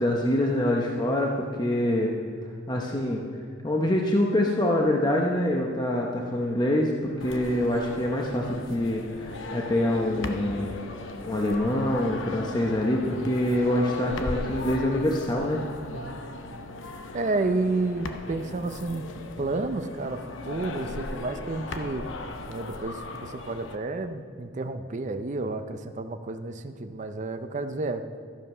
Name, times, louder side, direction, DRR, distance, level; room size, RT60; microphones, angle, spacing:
voice 1, 0.0-2.1 2.7-3.2 3.6-10.8 11.3-15.6, left 1 dB, 20° left, 0 dB, 0.8 m, -25 dB
sound 1, 7.2-23.8, left 2 dB, 80° left, 0.8 m, -37 dB
voice 2, 15.9-16.3 17.1-19.1 19.4-22.0 22.5-28.0, right 2 dB, 40° right, 8 dB, 0.5 m, -31 dB
13.0 x 7.4 x 5.5 m, 2.1 s
head